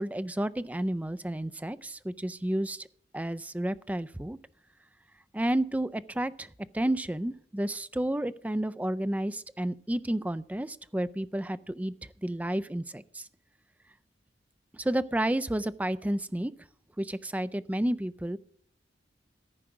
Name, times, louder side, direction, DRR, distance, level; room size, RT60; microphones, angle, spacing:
voice 1, 0.0-2.9 3.1-4.4 5.3-6.5 6.7-11.9 12.2-13.2 14.7-16.5 17.0-18.4, right 1 dB, 10° right, 14 dB, 0.4 m, -31 dB
14.0 x 4.9 x 7.7 m, 0.63 s
head